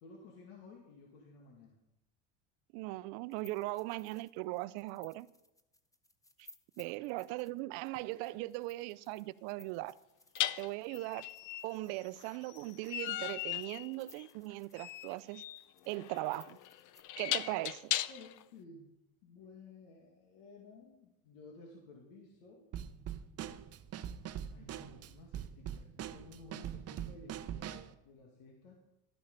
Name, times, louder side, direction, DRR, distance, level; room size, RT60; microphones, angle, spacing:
voice 1, 0.0-1.8 6.8-6.9 18.1-18.9 19.2-22.6 24.5-28.8, left 3 dB, 80° left, 2.4 m, -55 dB
voice 2, 2.7-5.3 6.8-9.9 10.6-11.3 11.6-15.4 15.9-16.6 17.2-18.0, right 19 dB, 70° right, 0.6 m, -39 dB
sound 1, 3.3-17.0, left 1 dB, 10° left, 0.9 m, -61 dB
sound 2, 8.0-8.1 10.4-18.4, left 13 dB, 50° left, 0.6 m, -38 dB
Drum kit / Snare drum, 22.7-27.9, right 10 dB, 35° right, 0.7 m, -43 dB
13.0 x 8.8 x 5.3 m
supercardioid pair, 110°, 41 cm